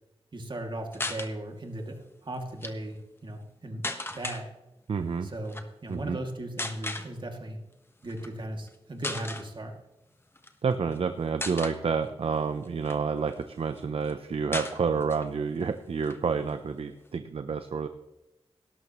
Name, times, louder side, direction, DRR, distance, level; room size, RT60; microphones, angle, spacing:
voice 1, 0.3-3.9 4.1-4.5 5.2-7.6 8.0-9.7, right 1 dB, 50° right, 2 dB, 2.5 m, -37 dB
sound 1, 0.9-1.3 2.4-2.7 3.8-4.4 5.5-5.7 6.6-7.1 8.1-8.3 8.7-8.8 9.0-9.5 10.4-11.0 11.4-11.8 12.4-13.4 13.8-13.9 14.1-14.2 14.5-15.3 15.6-15.7 16.0-17.1, left 2 dB, 20° left, 1.3 m, -36 dB
voice 2, 4.9-5.3 5.9-6.2 10.6-17.9, right 5 dB, 65° right, 9 dB, 0.7 m, -29 dB
17.5 x 12.5 x 3.1 m, 0.99 s
wide cardioid pair, 95°, 10 cm